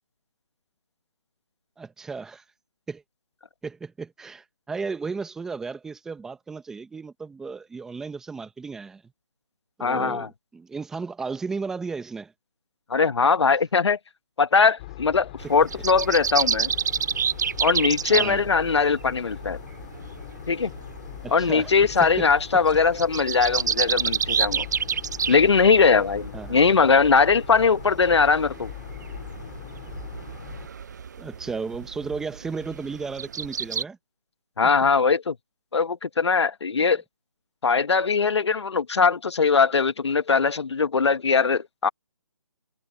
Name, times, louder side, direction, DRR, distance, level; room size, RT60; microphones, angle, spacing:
voice 1, 1.8-2.4 2.9-3.0 3.6-9.0 9.8-12.3 18.1-18.4 21.2-21.7 22.0-22.3 26.3-26.6 31.2-34.0, right 4 dB, 5° right, 1.2 m, -34 dB
voice 2, 9.8-10.3 12.9-14.0 14.4-16.7 17.6-19.6 20.5-20.7 21.3-24.6 25.3-28.7 34.6-35.3 35.7-37.0 37.6-41.9, left 5 dB, 60° left, 1.3 m, -21 dB
sound 1, 14.8-30.7, left 18 dB, 20° left, 5.1 m, -41 dB
sound 2, 15.4-33.8, right 7 dB, 35° right, 0.7 m, -30 dB
hypercardioid pair, 165°, 16 cm